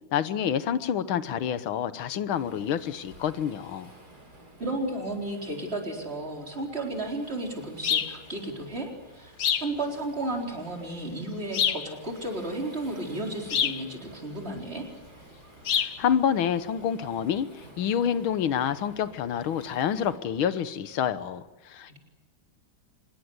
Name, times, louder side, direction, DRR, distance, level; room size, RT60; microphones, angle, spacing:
voice 1, 0.1-3.9 15.7-22.0, left 8 dB, 85° left, 13 dB, 1.9 m, -28 dB
Waves surf, 2.3-20.2, right 1 dB, 50° right, 7.4 m, -52 dB
voice 2, 4.6-14.9, right 2 dB, 30° right, 2 dB, 4.5 m, -33 dB
sound 1, 7.8-8.2 9.4-9.7 11.5-11.9 13.5-13.8 15.7-16.0, left 8 dB, 55° left, 1.3 m, -26 dB
25.5 x 21.0 x 8.0 m, 1.1 s
omnidirectional pair, 2.2 m